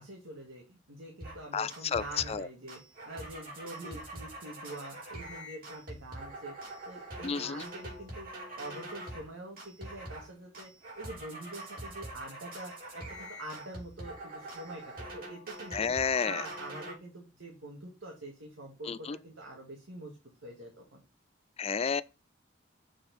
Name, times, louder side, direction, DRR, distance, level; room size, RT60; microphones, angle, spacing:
voice 1, 0.0-2.8 3.1-6.5 6.8-8.3 8.6-10.7 11.0-20.2 20.4-21.0, right 1 dB, 85° right, 2.2 m, -45 dB
sound 1, 1.2-1.4 1.7-2.4 2.7-9.3 9.6-10.3 10.5-16.9, right 1 dB, 50° right, 4.0 m, -44 dB
voice 2, 1.5-2.0 2.3-2.4 7.2-7.6 15.7-16.4 18.9-19.2 21.6-22.0, left 6 dB, 30° left, 0.4 m, -31 dB
7.6 x 4.4 x 5.5 m
head